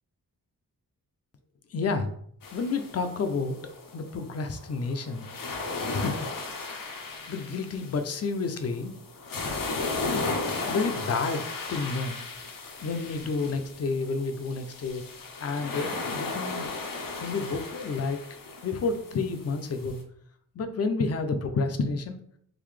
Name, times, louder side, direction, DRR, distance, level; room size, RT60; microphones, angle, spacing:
voice 1, 1.7-2.1 2.5-3.6 3.9-5.3 5.9-6.9 7.3-8.9 10.1-10.2 10.7-11.4 11.7-12.2 12.8-15.0 15.4-16.7 17.2-18.2 18.6-20.0 20.6-22.2, left 4 dB, 50° left, 7 dB, 0.5 m, -30 dB
sound 1, 2.4-20.0, left 3 dB, 75° left, 0.8 m, -36 dB
3.9 x 2.7 x 3.2 m, 0.65 s
wide cardioid pair, 130°, 34 cm